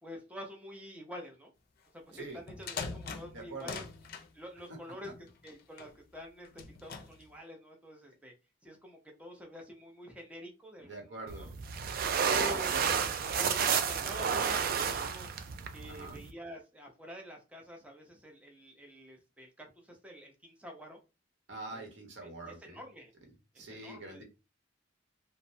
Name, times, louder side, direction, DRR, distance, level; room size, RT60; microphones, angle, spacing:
voice 1, 0.0-1.5 1.9-3.8 4.3-5.1 5.4-8.3 8.6-11.1 11.4-11.5 12.3-13.0 13.4-15.3 15.7-21.0 21.7-21.9 22.2-23.1 23.5-24.2, equal, 10° right, 1 dB, 0.6 m, -47 dB
sound 1, 2.3-4.3 5.0-5.9 6.4-7.2, left 5 dB, 55° left, 0.5 m, -42 dB
voice 2, 3.3-3.8 10.8-11.5 12.3-12.8 15.9-16.2 21.5-22.8 23.6-24.2, right 2 dB, 70° right, 2 dB, 0.9 m, -45 dB
sound 2, 11.3-16.3, right 7 dB, 50° right, 0.3 m, -31 dB
3.0 x 2.1 x 2.6 m, 0.28 s
head